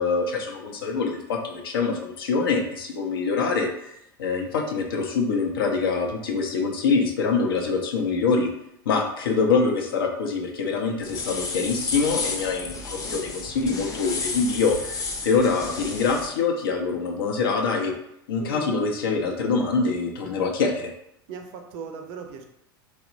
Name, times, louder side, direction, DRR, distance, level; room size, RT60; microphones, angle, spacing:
voice 1, 0.0-8.5 8.9-17.9 18.3-20.9, left 4 dB, 75° left, 2 dB, 0.5 m, -25 dB
sound 1, 11.0-16.3, left 3 dB, 30° left, 0.6 m, -32 dB
voice 2, 18.4-18.8 21.3-22.4, right 5 dB, 50° right, 5 dB, 0.4 m, -37 dB
3.0 x 2.0 x 2.4 m, 0.77 s
hypercardioid pair, 80°, 12 cm